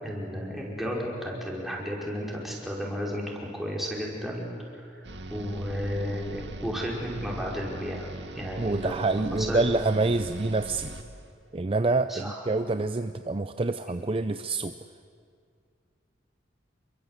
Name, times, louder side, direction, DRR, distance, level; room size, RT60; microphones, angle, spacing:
voice 1, 0.0-4.4 4.7-8.1 8.3-9.6 12.1-12.4, equal, ahead, -3 dB, 5.1 m, -33 dB
sound 1, 5.0-11.3, right 1 dB, 70° right, 1.9 m, -41 dB
voice 2, 8.6-10.9 11.5-14.7, right 3 dB, 30° right, 9 dB, 0.6 m, -27 dB
28.0 x 23.0 x 8.1 m, 2.3 s
head